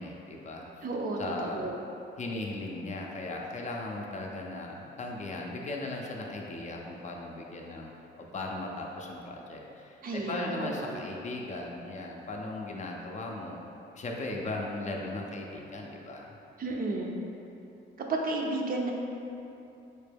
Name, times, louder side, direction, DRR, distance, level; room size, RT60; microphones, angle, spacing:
voice 1, 0.0-0.7 1.2-1.6 2.2-7.9 8.2-13.6 14.0-16.3, left 2 dB, 35° left, 0 dB, 0.4 m, -37 dB
voice 2, 0.8-1.8 10.0-11.0 16.6-17.2 18.1-18.9, right 2 dB, 45° right, 0 dB, 0.5 m, -32 dB
4.2 x 2.1 x 3.3 m, 2.8 s
cardioid pair, 90°, 20 cm